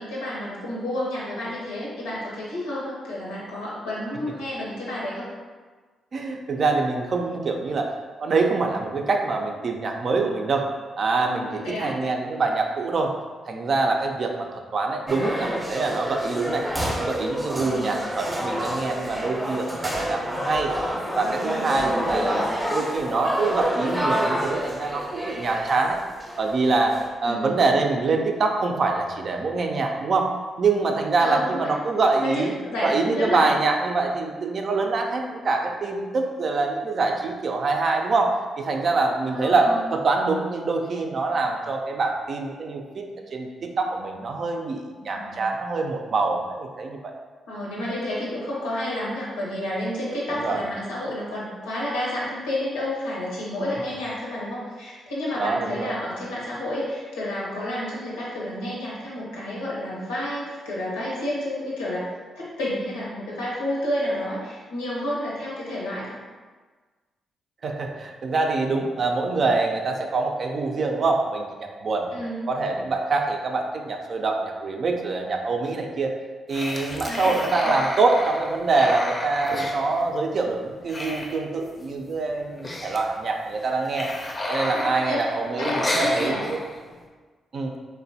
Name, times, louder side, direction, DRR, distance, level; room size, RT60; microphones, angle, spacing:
voice 1, 0.0-5.3 11.5-12.0 17.6-18.0 21.7-22.4 27.2-27.5 31.2-31.7 32.2-33.6 39.3-39.8 45.1-45.4 47.5-66.1 72.1-72.4 77.1-77.3 85.0-85.2 85.5-86.4, left 1 dB, 85° left, -6 dB, 0.7 m, -30 dB
voice 2, 6.1-7.9 8.2-10.7 11.0-13.1 13.5-16.7 17.0-20.7 21.2-26.0 26.4-27.0 27.2-30.3 30.6-32.5 32.8-43.1 43.3-47.1 50.3-50.6 55.4-55.9 67.6-72.1 72.5-76.1 76.5-84.1 84.5-86.6 87.5-87.7, right 3 dB, 55° right, 2 dB, 0.4 m, -25 dB
sound 1, 15.1-27.1, equal, 15° right, 0.6 m, -28 dB
sound 2, 76.5-80.5 80.7-81.9 82.1-82.2 82.5-83.1 83.6-86.9, left 1 dB, 35° left, 0.5 m, -31 dB
3.1 x 2.1 x 2.6 m, 1.4 s
hypercardioid pair, 40°, 0 cm